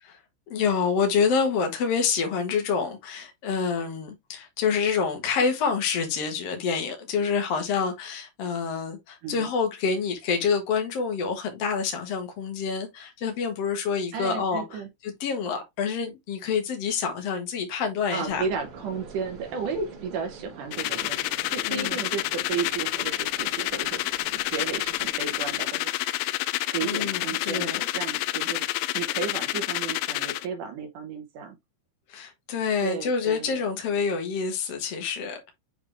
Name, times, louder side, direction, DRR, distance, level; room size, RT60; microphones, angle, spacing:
voice 1, 0.5-14.6 15.0-18.4 21.7-22.0 26.8-27.8 32.1-35.4, left 6 dB, 65° left, 1.5 m, -27 dB
voice 2, 14.1-14.9 18.1-21.2 21.5-24.0 24.3-26.3 26.7-28.7 28.9-31.6 32.8-33.8, right 6 dB, 80° right, 1.8 m, -33 dB
sound 1, 18.2-25.6, right 4 dB, 45° right, 2.8 m, -46 dB
sound 2, 20.7-30.5, left 18 dB, 85° left, 2.8 m, -29 dB
7.8 x 3.6 x 3.4 m
omnidirectional pair, 5.1 m